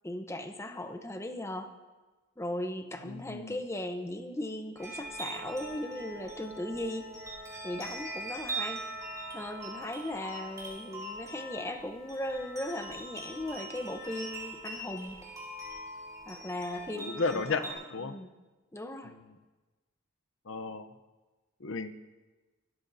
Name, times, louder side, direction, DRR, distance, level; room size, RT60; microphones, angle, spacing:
voice 1, 0.0-1.7 2.4-7.1 7.6-8.9 9.3-15.2 16.3-17.8 18.0-18.3 18.7-19.1, left 1 dB, 15° left, 6 dB, 0.8 m, -37 dB
voice 2, 3.0-3.6 16.9-18.2 19.0-19.4 20.5-20.9 21.6-21.9, left 4 dB, 70° left, 10 dB, 0.7 m, -34 dB
sound 1, 4.8-17.7, right 2 dB, 15° right, 4.2 m, -42 dB
24.5 x 13.5 x 2.7 m, 1.2 s
head